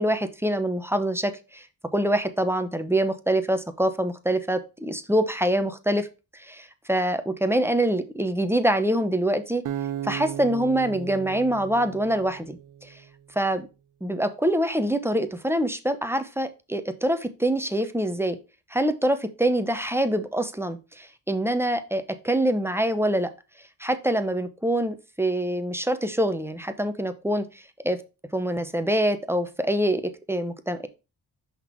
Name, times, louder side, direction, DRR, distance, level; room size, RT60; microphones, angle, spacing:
voice 1, 0.0-1.7 1.9-6.1 6.3-9.6 10.0-13.0 13.4-13.7 14.0-18.4 18.7-23.3 23.8-27.5 27.8-28.0 28.3-30.9, right 1 dB, 5° right, 9 dB, 0.8 m, -25 dB
Acoustic guitar, 9.6-12.9, right 10 dB, 50° right, 0.6 m, -35 dB
5.7 x 3.9 x 4.5 m, 0.29 s
cardioid pair, 60°, 40 cm